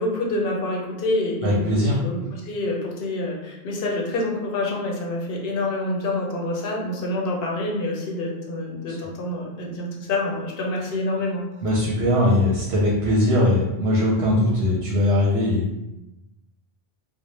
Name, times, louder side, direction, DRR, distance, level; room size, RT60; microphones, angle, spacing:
voice 1, 0.0-11.4, left 2 dB, 70° left, -1 dB, 0.8 m, -27 dB
voice 2, 1.4-2.0 8.9-9.0 11.6-15.6, left 1 dB, 85° right, -4 dB, 0.8 m, -20 dB
2.1 x 2.0 x 3.0 m, 0.95 s
omnidirectional pair, 1.0 m